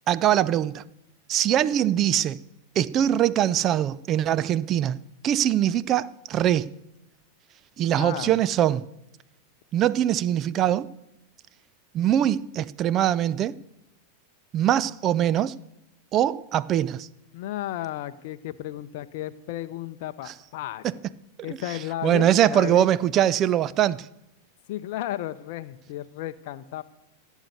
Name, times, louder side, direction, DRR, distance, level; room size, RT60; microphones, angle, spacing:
voice 1, 0.1-0.8 1.3-2.4 2.8-6.7 7.8-8.9 9.7-10.9 11.9-13.6 14.5-15.6 16.1-17.1 20.8-20.9 22.0-24.1, right 11 dB, 30° right, 0.4 m, -22 dB
voice 2, 7.9-8.4 17.3-20.8 21.4-22.9 24.7-26.8, left 14 dB, 50° left, 0.6 m, -33 dB
15.5 x 8.2 x 8.1 m
figure-of-eight pair, 90°, 0 cm